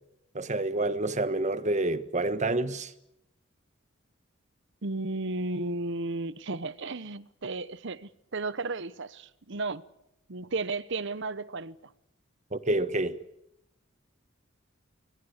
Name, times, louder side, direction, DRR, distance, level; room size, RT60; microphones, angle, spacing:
voice 1, 0.3-2.9 12.5-13.2, right 2 dB, 35° right, 1.4 m, -28 dB
voice 2, 4.8-9.8 10.3-11.9, right 3 dB, 65° right, 1.0 m, -34 dB
25.0 x 21.0 x 8.1 m
head